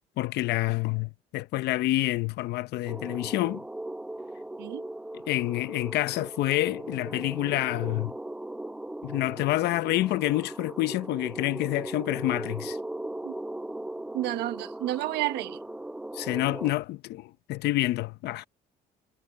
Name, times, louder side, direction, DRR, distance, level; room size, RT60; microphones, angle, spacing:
voice 1, 0.2-3.6 5.3-8.1 9.0-12.8 16.1-18.5, left 17 dB, 80° left, 0.8 m, -28 dB
sound 1, 2.9-16.7, right 1 dB, 5° right, 0.7 m, -38 dB
voice 2, 14.1-15.6, right 16 dB, 85° right, 1.0 m, -30 dB
cardioid pair, 110°, 17 cm